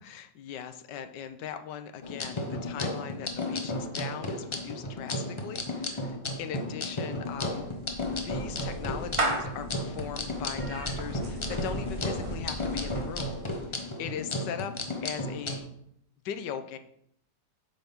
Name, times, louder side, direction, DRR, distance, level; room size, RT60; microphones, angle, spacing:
voice 1, 0.0-7.7 8.2-13.4 13.7-14.7 15.0-15.7 16.2-16.8, left 8 dB, 80° left, 9 dB, 1.3 m, -39 dB
sound 1, 2.0-15.6, left 2 dB, 55° left, 0.3 m, -34 dB
Clapping / Meow, 7.3-13.7, right 2 dB, 30° right, 0.6 m, -36 dB
7.9 x 5.7 x 3.6 m, 0.73 s
omnidirectional pair, 1.8 m